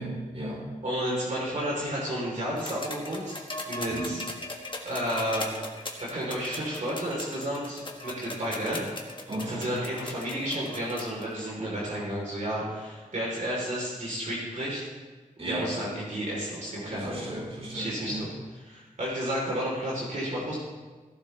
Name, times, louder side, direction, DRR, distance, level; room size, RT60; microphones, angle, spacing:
voice 1, 0.0-0.6 3.9-4.1 9.3-9.7 15.4-15.8 16.8-18.3, right 1 dB, 45° right, -5 dB, 3.9 m, -35 dB
voice 2, 0.8-3.4 3.7-4.2 4.9-5.5 5.8-8.9 9.5-14.9 15.5-17.3 17.7-18.3 18.7-20.6, equal, 60° right, -5 dB, 3.6 m, -32 dB
sound 1, 2.6-11.2 12.4-12.5, left 2 dB, 35° left, 1.6 m, -39 dB
17.0 x 11.5 x 3.4 m, 1.3 s
wide cardioid pair, 95°, 14 cm